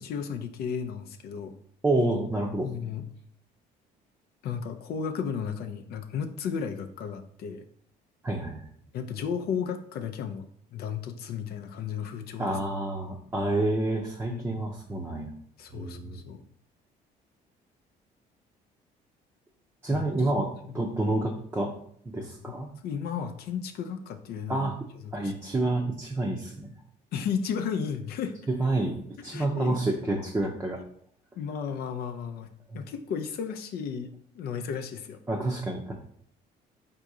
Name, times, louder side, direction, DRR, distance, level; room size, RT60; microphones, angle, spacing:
voice 1, 0.0-1.6 2.6-3.0 4.4-7.6 8.9-12.6 14.3-14.7 15.6-16.5 19.9-20.1 20.6-20.8 22.4-22.5 22.8-24.7 25.0-25.6 27.1-28.4 29.2-29.8 31.4-32.5 32.7-35.2, left 7 dB, 70° left, 7 dB, 0.5 m, -34 dB
voice 2, 1.8-2.7 8.2-8.6 12.4-15.3 15.7-16.2 19.8-20.5 20.7-21.7 22.1-22.7 24.5-24.7 25.1-26.7 28.5-29.0 29.2-30.8 32.7-32.8 35.3-35.9, right 2 dB, 15° right, -1 dB, 0.6 m, -28 dB
3.7 x 2.8 x 4.7 m, 0.65 s
cardioid pair, 110°, 17 cm